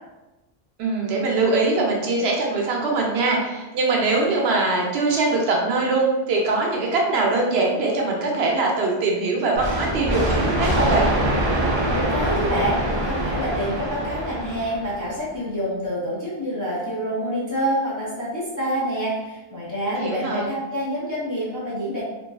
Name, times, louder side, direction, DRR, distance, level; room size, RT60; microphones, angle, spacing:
voice 1, 0.8-11.1 19.9-20.5, right 3 dB, 80° right, -1 dB, 0.8 m, -22 dB
sound 1, 9.6-15.2, right 1 dB, 45° right, 0.4 m, -24 dB
voice 2, 11.9-22.0, equal, 25° left, -7 dB, 0.4 m, -27 dB
2.7 x 2.3 x 2.2 m, 1.1 s
omnidirectional pair, 1.1 m